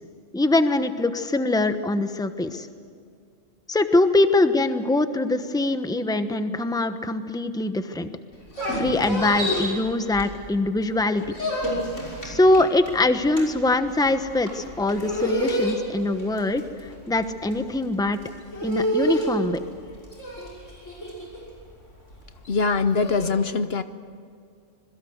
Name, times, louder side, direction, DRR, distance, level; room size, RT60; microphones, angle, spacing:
voice 1, 0.3-2.7 3.7-8.1 8.7-11.2 12.2-16.6 17.1-18.2 18.6-19.6, left 2 dB, 5° left, 9 dB, 1.0 m, -23 dB
sound 1, 8.3-10.7 11.0-23.3, equal, 85° left, 6.5 m, -29 dB
voice 2, 22.5-23.8, left 4 dB, 60° left, 11 dB, 1.1 m, -22 dB
26.5 x 21.5 x 8.1 m, 2.3 s
omnidirectional pair, 1.2 m